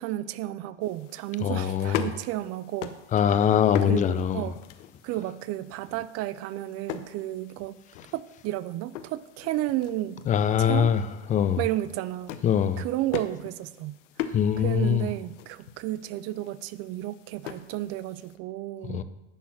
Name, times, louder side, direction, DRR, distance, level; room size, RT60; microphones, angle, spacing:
voice 1, 0.0-3.0 3.9-4.6 5.0-7.8 8.1-10.2 10.6-10.9 11.6-12.4 12.8-14.0 14.6-19.0, right 15 dB, 40° right, 0.4 m, -32 dB
sound 1, 0.8-18.4, left 10 dB, 75° left, 0.8 m, -41 dB
voice 2, 1.4-2.1 3.1-4.4 10.3-11.0 11.3-11.6 12.4-12.9 14.3-15.1 18.9-19.0, left 9 dB, 20° left, 0.4 m, -23 dB
10.0 x 4.1 x 5.9 m
hypercardioid pair, 100°, 37 cm